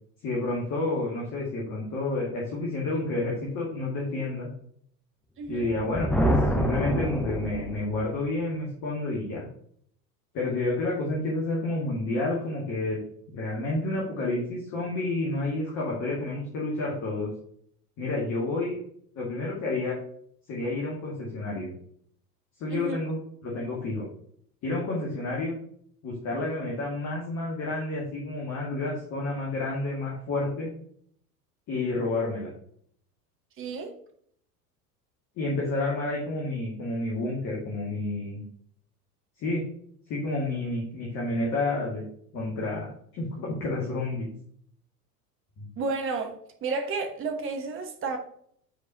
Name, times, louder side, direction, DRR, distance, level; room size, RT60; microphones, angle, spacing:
voice 1, 0.2-4.5 5.5-9.5 10.3-13.0 13.3-17.3 18.0-18.8 19.2-20.0 20.5-21.7 22.6-24.1 24.6-25.6 26.0-30.7 31.7-32.5 35.4-38.4 39.4-39.6 40.1-42.0 42.3-44.3 45.6-45.7, left 2 dB, 35° left, -4 dB, 1.8 m, -30 dB
voice 2, 5.4-5.7 22.7-23.0 33.6-33.9 45.8-46.4 46.6-48.2, right 4 dB, 25° right, 5 dB, 1.0 m, -31 dB
Thunder, 5.5-8.2, equal, 5° left, 0.5 m, -27 dB
8.3 x 4.6 x 2.8 m, 0.64 s
figure-of-eight pair, 75°, 47 cm